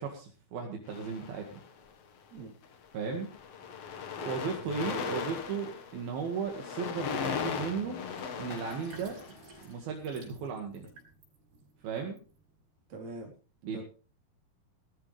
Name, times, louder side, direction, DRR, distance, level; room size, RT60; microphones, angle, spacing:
voice 1, 0.0-1.5 2.9-3.3 4.2-8.0 8.4-9.2 9.6-10.9 11.8-12.2 13.6-13.8, right 6 dB, 70° right, 2 dB, 3.8 m, -36 dB
sound 1, 0.9-1.9 2.6-2.9 3.1-9.6, left 6 dB, 55° left, 1.9 m, -38 dB
Sink (filling or washing), 8.0-12.7, right 3 dB, 85° right, 7.7 m, -54 dB
voice 2, 12.9-13.3 13.6-13.8, right 2 dB, 45° right, 1 dB, 5.0 m, -43 dB
18.5 x 14.0 x 3.4 m, 0.36 s
omnidirectional pair, 4.5 m